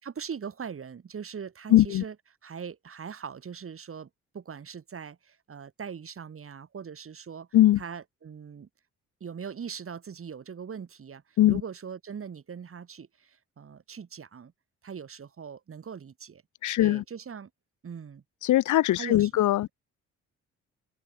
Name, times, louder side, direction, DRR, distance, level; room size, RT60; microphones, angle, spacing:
voice 1, 0.0-2.1 2.4-4.1 4.3-7.5 7.8-8.7 9.2-14.5 14.8-16.4 16.8-17.5 17.8-18.2 19.0-19.3, right 7 dB, 45° right, 6.9 m, -41 dB
voice 2, 1.7-2.0 7.5-7.8 11.4-11.6 16.6-17.0 18.4-19.7, left 14 dB, 75° left, 1.5 m, -21 dB
open air
cardioid pair, 90°, 30 cm